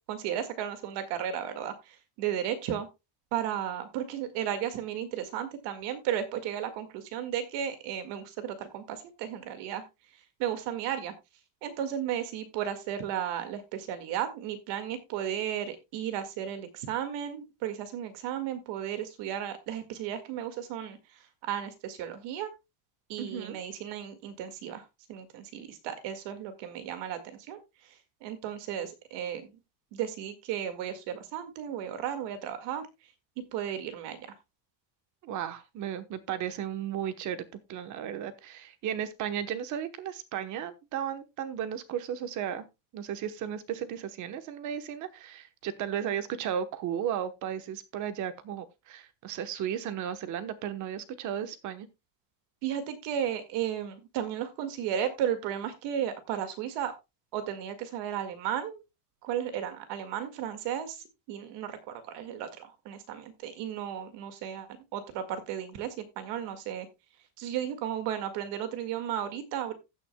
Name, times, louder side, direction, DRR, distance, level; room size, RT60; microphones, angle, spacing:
voice 1, 0.1-2.9 3.3-9.8 10.4-11.1 11.6-21.0 21.4-22.5 23.1-24.8 25.1-29.6 29.9-32.9 33.5-34.3 52.6-56.9 57.3-58.8 59.2-66.9 67.4-69.7, right 10 dB, 60° right, 1.9 m, -34 dB
voice 2, 23.2-23.6 35.2-42.6 42.9-51.9, right 9 dB, 35° right, 1.1 m, -35 dB
15.5 x 8.6 x 2.2 m
cardioid pair, 175°, 48 cm